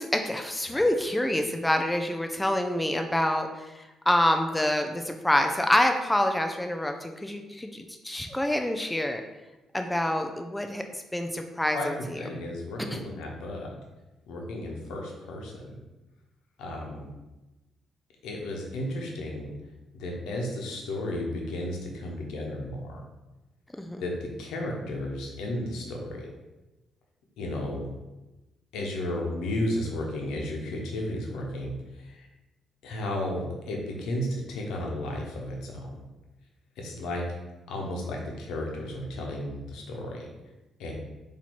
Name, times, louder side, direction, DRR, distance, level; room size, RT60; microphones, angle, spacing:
voice 1, 0.0-9.2 9.7-12.2 12.9-13.0 23.8-24.0, left 1 dB, 10° left, 4 dB, 0.4 m, -27 dB
voice 2, 12.2-13.7 14.3-15.7 16.6-17.0 18.2-19.5 19.9-23.0 24.0-26.3 27.4-27.8 28.7-32.3 32.8-36.0 36.8-37.2 37.7-40.3 40.8-40.9, left 1 dB, 85° left, 0 dB, 0.9 m, -33 dB
4.4 x 2.8 x 4.3 m, 1.1 s
cardioid pair, 90°, 0 cm